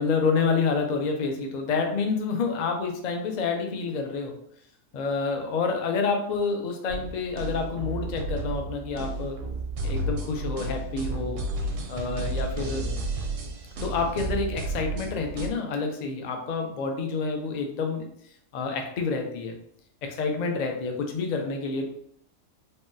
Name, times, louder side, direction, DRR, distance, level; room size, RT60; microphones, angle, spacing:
voice 1, 0.0-4.4 4.9-9.4 9.8-11.4 11.9-12.9 13.8-18.1 18.5-19.5 20.0-21.8, left 4 dB, 55° left, 3 dB, 0.4 m, -28 dB
sound 1, 6.9-15.5, right 2 dB, 80° right, 0.9 m, -32 dB
3.5 x 2.2 x 2.6 m, 0.68 s
omnidirectional pair, 1.3 m